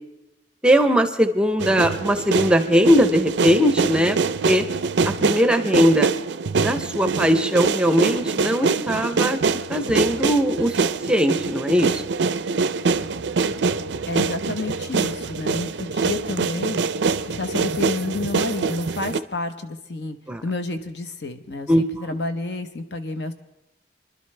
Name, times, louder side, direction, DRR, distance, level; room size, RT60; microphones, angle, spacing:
voice 1, 0.6-4.2 4.5-4.6 5.0-6.1 6.6-9.4 9.7-10.8 11.1-12.0 20.3-20.4 21.7-21.8, equal, 5° right, 9 dB, 0.6 m, -19 dB
sound 1, 1.6-19.2, right 4 dB, 70° right, 0.5 m, -24 dB
voice 2, 14.1-16.8 17.4-20.2 20.4-23.3, left 2 dB, 65° left, 8 dB, 0.9 m, -30 dB
25.5 x 11.5 x 3.3 m, 0.95 s
head